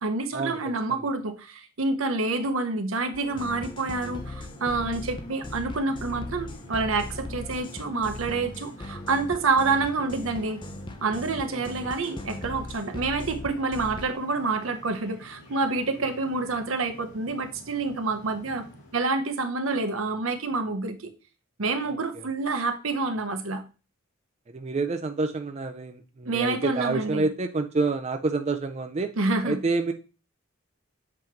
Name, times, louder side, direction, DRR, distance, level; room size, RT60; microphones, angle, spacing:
voice 1, 0.0-10.6 11.0-18.7 18.9-21.0 21.6-23.6 26.3-27.3 29.2-29.6, right 3 dB, 75° right, 8 dB, 0.8 m, -28 dB
sound 1, 3.1-14.1, left 2 dB, 20° left, 0.6 m, -39 dB
sound 2, 3.3-19.1, equal, 70° left, 2.9 m, -49 dB
voice 2, 24.5-29.1 29.4-29.9, right 3 dB, 30° right, 7 dB, 0.4 m, -27 dB
7.7 x 3.0 x 4.5 m, 0.33 s
head